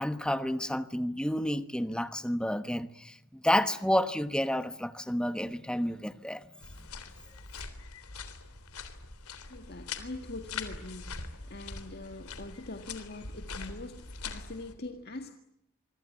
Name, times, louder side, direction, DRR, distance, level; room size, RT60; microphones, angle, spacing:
voice 1, 0.0-6.4, equal, 5° left, 11 dB, 1.1 m, -30 dB
sound 1, 6.6-14.7, left 4 dB, 90° left, 3.5 m, -43 dB
voice 2, 9.5-15.3, left 2 dB, 45° left, 6 dB, 1.8 m, -43 dB
26.5 x 24.5 x 8.5 m, 0.82 s
head